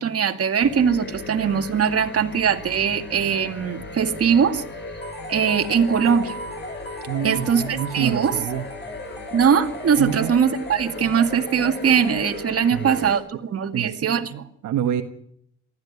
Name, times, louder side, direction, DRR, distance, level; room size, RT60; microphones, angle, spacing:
voice 1, 0.0-4.6 5.3-6.4 7.2-8.3 9.3-14.3, right 7 dB, 50° right, 6 dB, 2.2 m, -21 dB
sound 1, 0.6-13.2, left 2 dB, 35° left, 5.2 m, -37 dB
sound 2, 5.0-12.8, equal, 20° left, 6.4 m, -38 dB
voice 2, 7.1-8.6 10.0-10.3 12.7-12.9 13.7-15.0, right 10 dB, 75° right, 6 dB, 1.6 m, -27 dB
19.5 x 14.0 x 9.6 m, 0.70 s
cardioid pair, 90°, 30 cm